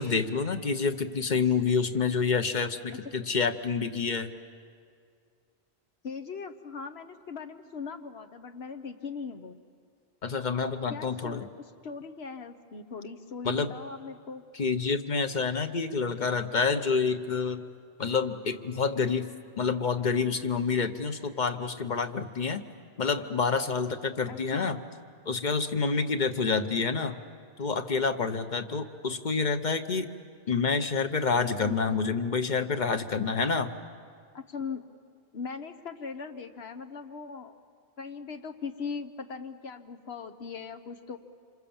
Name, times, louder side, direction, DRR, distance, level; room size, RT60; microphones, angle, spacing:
voice 1, 0.0-4.3 10.2-11.5 13.4-13.7 14.6-17.6 18.0-19.3 19.6-22.6 23.0-24.8 25.3-27.2 27.6-30.1 30.5-33.7, left 5 dB, 45° left, 8 dB, 1.1 m, -28 dB
voice 2, 6.0-9.6 10.9-14.4 24.3-24.8 31.6-31.7 34.3-34.9 35.3-37.6 38.0-41.2, left 5 dB, 80° left, 7 dB, 1.3 m, -39 dB
27.5 x 26.0 x 7.2 m, 2.2 s
omnidirectional pair, 1.1 m